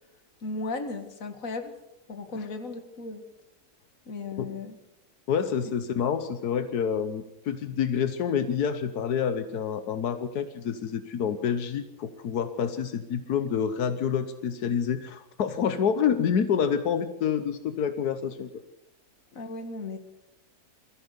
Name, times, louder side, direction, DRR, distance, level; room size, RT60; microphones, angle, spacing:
voice 1, 0.4-1.8 2.1-3.2 4.1-4.8 5.6-5.7 19.3-20.0, left 3 dB, 60° left, 8 dB, 2.2 m, -36 dB
voice 2, 5.3-18.5, left 7 dB, 90° left, 10 dB, 1.5 m, -28 dB
22.0 x 14.5 x 8.1 m, 0.94 s
omnidirectional pair, 1.6 m